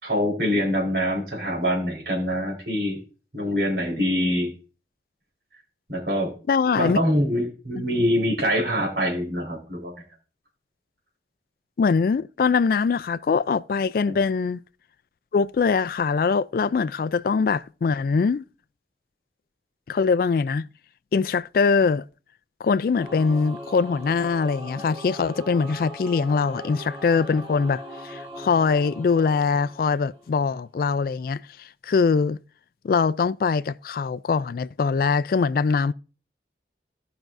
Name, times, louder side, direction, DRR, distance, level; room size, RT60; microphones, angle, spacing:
voice 1, 0.0-3.0 3.3-4.5 5.9-6.3 6.8-9.9 14.1-14.2, equal, 65° right, 4.1 m, -24 dB
voice 2, 6.5-7.0 11.8-14.6 15.3-18.4 19.9-20.7 21.1-22.0 22.6-32.4 32.8-35.9, left 5 dB, 55° left, 0.3 m, -22 dB
Singing / Musical instrument, 23.0-30.5, equal, 30° right, 1.6 m, -40 dB
16.5 x 6.0 x 2.6 m
head